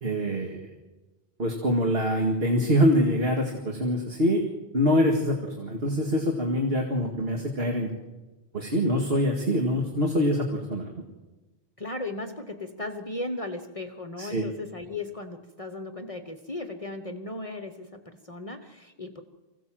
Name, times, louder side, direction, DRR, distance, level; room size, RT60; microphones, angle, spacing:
voice 1, 0.0-0.7 1.4-4.4 4.7-7.9 8.5-10.9 14.2-14.5, equal, 60° right, 2 dB, 2.2 m, -25 dB
voice 2, 11.8-19.2, left 2 dB, 30° left, 7 dB, 1.2 m, -36 dB
25.0 x 16.5 x 7.5 m, 1.2 s
omnidirectional pair, 1.1 m